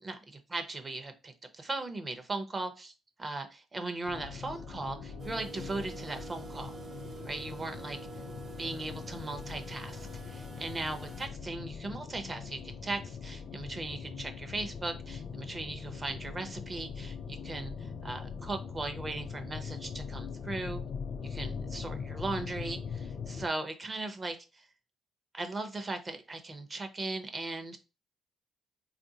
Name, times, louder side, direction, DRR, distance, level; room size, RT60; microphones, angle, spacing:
voice 1, 0.0-2.9 3.2-6.7 7.2-8.0 8.6-20.8 21.2-24.7 25.3-27.8, right 2 dB, 30° right, 7 dB, 0.7 m, -38 dB
sound 1, 4.0-23.5, left 6 dB, 60° left, 0.4 m, -41 dB
sound 2, 4.4-11.9, right 8 dB, 75° right, 0.5 m, -54 dB
sound 3, 5.2-11.3, right 4 dB, 50° right, 1.0 m, -48 dB
3.5 x 2.5 x 2.7 m, 0.29 s
cardioid pair, 90°, 0 cm